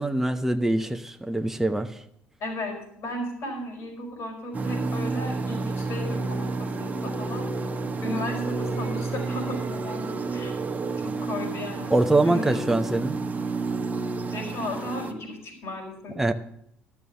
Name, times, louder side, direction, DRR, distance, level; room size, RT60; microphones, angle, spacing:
voice 1, 0.0-2.0 11.9-13.2 16.2-16.3, right 2 dB, 5° right, 5 dB, 0.9 m, -24 dB
voice 2, 2.4-7.5 8.0-10.6 11.0-12.8 14.3-16.2, left 1 dB, 60° left, 1 dB, 5.3 m, -35 dB
sound 1, 4.5-15.1, right 3 dB, 30° right, 1.3 m, -30 dB
12.0 x 7.1 x 7.4 m, 0.73 s
hypercardioid pair, 60°, 5 cm